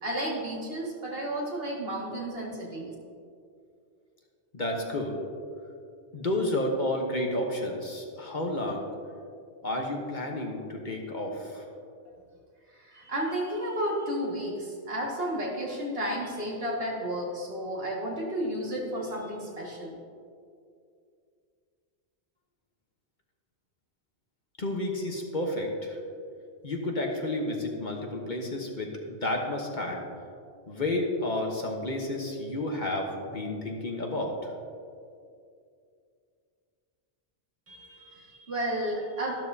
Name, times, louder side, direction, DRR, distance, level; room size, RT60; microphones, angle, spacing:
voice 1, 0.0-2.9 12.7-20.0 37.7-39.3, right 1 dB, 65° right, -4 dB, 2.3 m, -32 dB
voice 2, 4.5-5.2 6.1-8.9 9.6-11.7 24.6-26.0 26.6-30.0 30.7-34.5, left 1 dB, 45° left, 1 dB, 1.3 m, -31 dB
13.0 x 12.0 x 2.8 m, 2.4 s
omnidirectional pair, 1.1 m